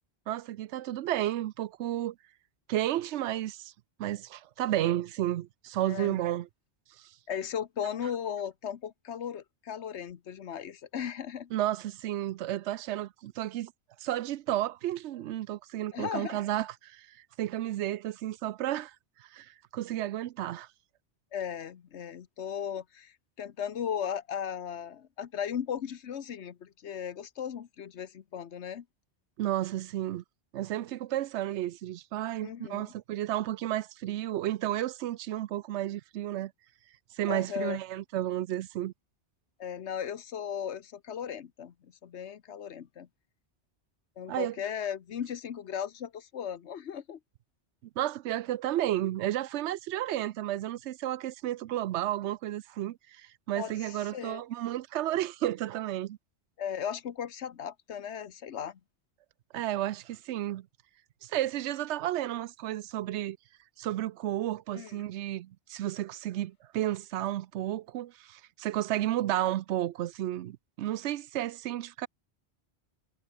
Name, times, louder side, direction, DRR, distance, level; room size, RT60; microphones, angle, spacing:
voice 1, 0.3-2.2 2.7-3.7 4.0-6.5 7.0-7.1 11.5-13.7 14.0-18.9 19.2-20.7 29.4-30.2 30.5-36.5 37.1-38.9 44.3-44.6 48.0-56.2 59.5-60.7 61.2-63.4 63.8-72.1, right 13 dB, 85° right, 0.9 m, -32 dB
voice 2, 5.9-6.2 7.3-11.5 15.9-16.4 21.3-28.9 32.4-32.9 37.3-37.8 39.6-43.1 44.2-47.2 53.5-54.4 56.6-58.8 64.7-65.0, left 8 dB, 90° left, 1.3 m, -37 dB
omnidirectional pair, 1.1 m